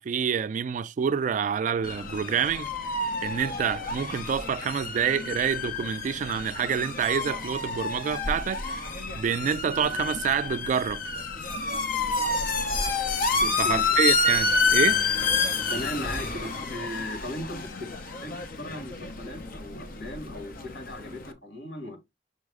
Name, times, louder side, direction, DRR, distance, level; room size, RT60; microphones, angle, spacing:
voice 1, 0.0-2.7 3.2-8.9 9.1-11.0 13.6-15.0, right 7 dB, 45° right, 0.3 m, -27 dB
sound 1, 1.8-21.3, left 4 dB, 55° left, 0.7 m, -29 dB
voice 2, 13.4-13.8 15.7-17.9 18.2-22.0, left 1 dB, 85° left, 1.9 m, -37 dB
5.5 x 2.0 x 4.7 m
head